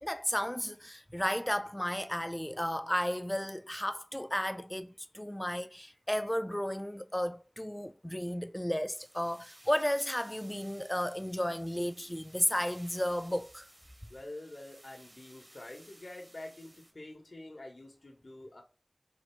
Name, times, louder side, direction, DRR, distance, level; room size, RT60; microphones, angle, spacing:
voice 1, 0.0-4.9 5.1-13.7, equal, 15° left, 0.3 m, -33 dB
sound 1, 8.9-16.9, right 1 dB, 45° right, 1.1 m, -58 dB
voice 2, 14.1-18.6, left 1 dB, 70° left, 1.1 m, -47 dB
4.2 x 2.6 x 4.3 m
wide cardioid pair, 50°, 0 cm